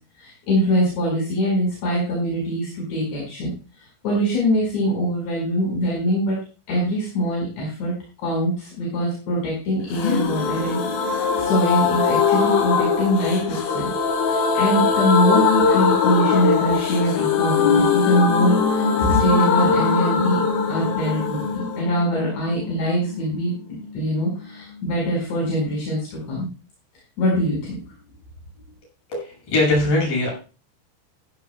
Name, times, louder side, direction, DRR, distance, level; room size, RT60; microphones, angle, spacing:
voice 1, 0.2-6.4 6.7-7.9 8.2-13.9 14.2-20.4 20.7-26.5 27.2-27.9, equal, 60° left, -4 dB, 7.1 m, -23 dB
sound 1, 9.9-23.6 23.8-23.9 24.2-24.3, left 5 dB, 85° left, 4.9 m, -21 dB
voice 2, 29.1-30.3, left 2 dB, 45° left, -3 dB, 8.4 m, -21 dB
15.0 x 15.0 x 2.3 m, 0.34 s
omnidirectional pair, 5.6 m